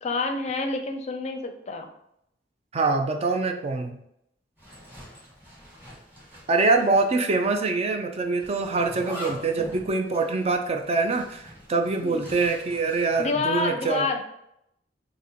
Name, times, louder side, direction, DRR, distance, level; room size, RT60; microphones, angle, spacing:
voice 1, 0.0-1.9 12.0-12.2 13.2-14.2, left 3 dB, 40° left, 5 dB, 0.5 m, -28 dB
voice 2, 2.7-4.0 6.5-14.1, right 3 dB, 35° right, 5 dB, 0.4 m, -24 dB
Zipper (clothing), 4.6-7.2 7.4-7.5 8.4-13.3, left 1 dB, 10° right, 1.4 m, -43 dB
6.1 x 2.1 x 2.9 m, 0.77 s
head